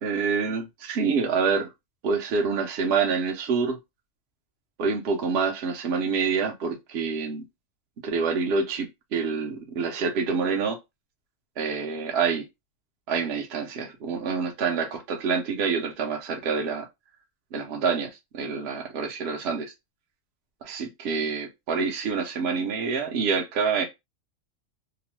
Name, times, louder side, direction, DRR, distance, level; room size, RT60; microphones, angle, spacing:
voice 1, 0.0-1.7 2.0-3.8 4.8-7.4 8.0-10.8 11.6-12.5 13.1-16.9 17.5-19.7 20.6-23.8, right 5 dB, 55° right, 0.9 m, -27 dB
2.9 x 2.1 x 3.0 m
omnidirectional pair, 1.5 m